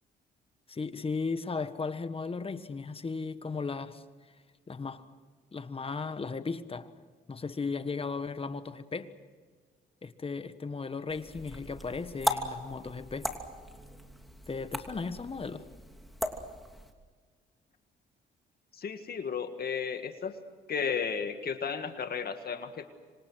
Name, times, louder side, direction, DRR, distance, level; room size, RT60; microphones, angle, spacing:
voice 1, 0.7-4.0 4.7-5.0 5.5-6.9 7.3-9.1 10.0-13.3 14.5-15.7, left 4 dB, 30° left, 1.4 m, -36 dB
sound 1, 11.1-16.9, equal, ahead, 2.8 m, -38 dB
voice 2, 18.7-20.3 20.7-22.9, left 6 dB, 50° left, 1.9 m, -34 dB
27.0 x 25.0 x 6.3 m
cardioid pair, 90°, 20 cm